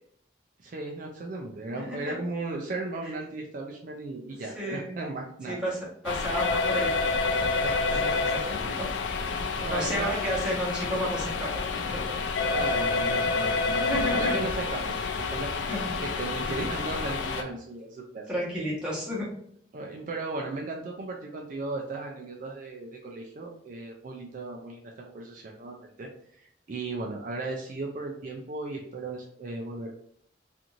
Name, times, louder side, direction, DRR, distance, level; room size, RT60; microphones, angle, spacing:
voice 1, 0.6-5.6 7.6-8.3 9.6-10.1 12.5-15.7 16.0-18.2 19.7-26.1 26.7-29.9, right 2 dB, 45° right, -1 dB, 0.4 m, -36 dB
voice 2, 1.7-2.2 3.0-3.1 4.4-4.9 5.5-7.0 8.0-8.9 9.7-11.6 11.9-12.1 13.7-14.4 15.7-15.9 16.4-16.7 18.3-19.3, equal, 5° right, -7 dB, 1.0 m, -32 dB
sound 1, 6.0-17.4, left 4 dB, 80° left, 0.4 m, -28 dB
2.5 x 2.5 x 2.9 m, 0.66 s
head